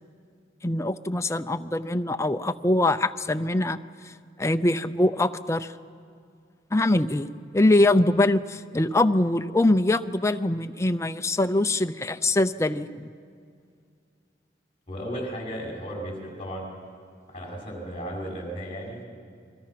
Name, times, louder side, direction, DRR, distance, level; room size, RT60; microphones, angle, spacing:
voice 1, 0.6-3.8 4.4-5.7 6.7-13.1, left 2 dB, 15° left, 9 dB, 0.5 m, -23 dB
voice 2, 14.9-16.7 17.3-19.1, equal, 35° left, -2 dB, 5.8 m, -35 dB
29.0 x 22.0 x 5.9 m, 2.2 s
head